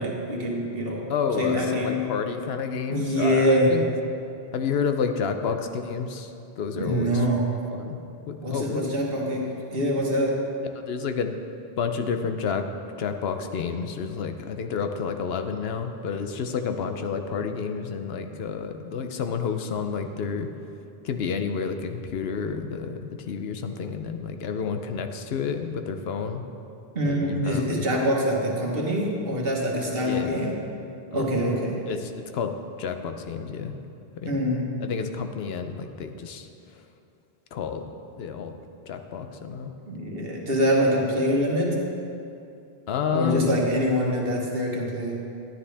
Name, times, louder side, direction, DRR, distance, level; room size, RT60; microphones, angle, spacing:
voice 1, 0.0-1.1 1.4-2.1 2.9-3.9 6.7-7.5 8.4-10.4 26.9-30.6 31.1-31.9 34.2-34.7 39.9-41.9 43.1-45.3, equal, 65° right, -2 dB, 1.6 m, -25 dB
voice 2, 1.1-3.9 4.5-7.2 7.7-8.0 8.3-8.9 10.8-11.3 11.8-12.6 13.0-20.5 21.0-26.4 27.0-27.8 30.0-30.3 31.1-31.2 31.9-33.8 34.2-34.4 34.8-36.5 37.5-37.8 38.2-38.6 38.9-39.7 42.9-43.6, left 6 dB, 80° left, 7 dB, 0.9 m, -30 dB
12.0 x 9.8 x 3.4 m, 2.7 s
omnidirectional pair, 1.0 m